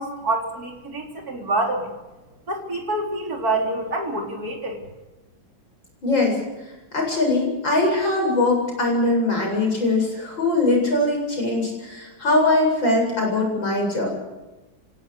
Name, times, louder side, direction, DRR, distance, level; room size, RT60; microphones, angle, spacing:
voice 1, 0.0-1.9 2.5-4.8, right 2 dB, 45° right, 1 dB, 4.3 m, -26 dB
voice 2, 6.0-6.4 6.9-14.2, left 2 dB, 65° left, 0 dB, 8.4 m, -21 dB
26.5 x 17.0 x 8.4 m, 1.1 s
omnidirectional pair, 2.2 m